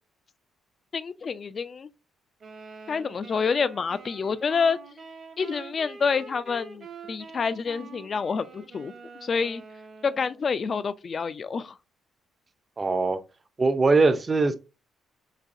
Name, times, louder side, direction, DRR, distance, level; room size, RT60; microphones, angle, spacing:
voice 1, 0.9-1.9 2.9-4.8 5.4-8.9 9.2-9.6 10.0-11.7, left 5 dB, 45° left, 0.3 m, -28 dB
sound 1, 2.4-10.4, right 5 dB, 50° right, 1.0 m, -46 dB
voice 2, 12.8-13.2 13.6-14.5, right 3 dB, 30° right, 0.5 m, -21 dB
3.9 x 2.7 x 2.5 m
cardioid pair, 90°, 0 cm